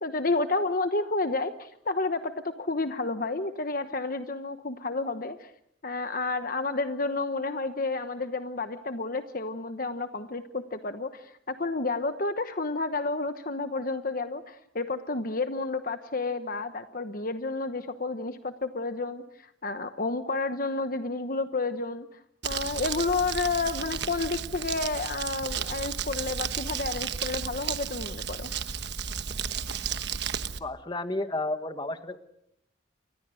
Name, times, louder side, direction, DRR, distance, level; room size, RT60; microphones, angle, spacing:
voice 1, 0.0-5.5 5.8-22.1 22.4-28.5, left 3 dB, 45° left, 9 dB, 1.1 m, -30 dB
Crumpling crinkling, 22.4-30.6, right 7 dB, 60° right, 1.2 m, -33 dB
voice 2, 30.6-32.2, left 2 dB, 25° left, 9 dB, 1.6 m, -32 dB
29.5 x 24.0 x 6.4 m, 0.74 s
head